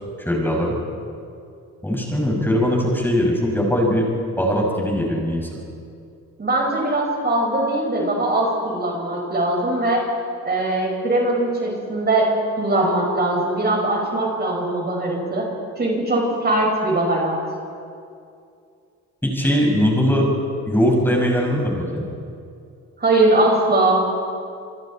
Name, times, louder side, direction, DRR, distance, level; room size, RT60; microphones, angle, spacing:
voice 1, 0.2-0.8 1.8-4.0 4.4-5.5 19.2-20.3 20.7-22.0, equal, 5° left, -1 dB, 6.2 m, -20 dB
voice 2, 6.4-10.0 10.4-12.3 12.6-15.4 15.8-17.4 23.0-24.0, right 2 dB, 35° right, -1 dB, 5.6 m, -21 dB
28.0 x 23.0 x 4.4 m, 2.4 s
cardioid pair, 90°, 30 cm